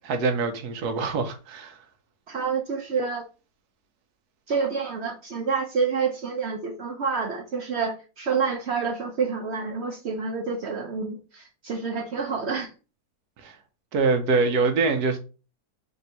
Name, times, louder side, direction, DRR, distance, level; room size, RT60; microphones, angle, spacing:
voice 1, 0.0-1.8 13.4-13.6 13.9-15.2, right 4 dB, 90° right, 1.2 m, -24 dB
voice 2, 2.3-3.2 4.5-12.7, right 5 dB, 60° right, 0.8 m, -28 dB
3.5 x 2.6 x 4.2 m
omnidirectional pair, 1.6 m